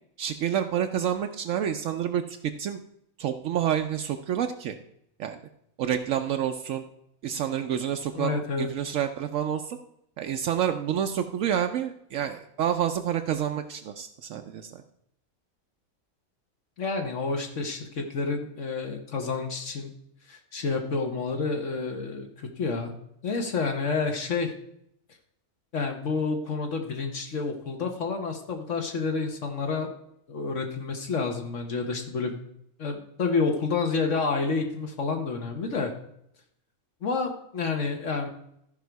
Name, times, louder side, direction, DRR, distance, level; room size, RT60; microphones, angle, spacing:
voice 1, 0.2-2.8 3.2-4.8 5.2-5.4 5.8-6.8 7.2-9.8 10.2-14.8, right 9 dB, 75° right, 6 dB, 0.9 m, -28 dB
voice 2, 8.1-8.7 16.8-19.9 20.3-22.9 23.2-24.5 25.7-29.9 30.3-32.4 32.8-35.9 37.0-38.3, left 4 dB, 65° left, 4 dB, 1.4 m, -29 dB
13.5 x 5.1 x 4.5 m, 0.74 s
omnidirectional pair, 1.4 m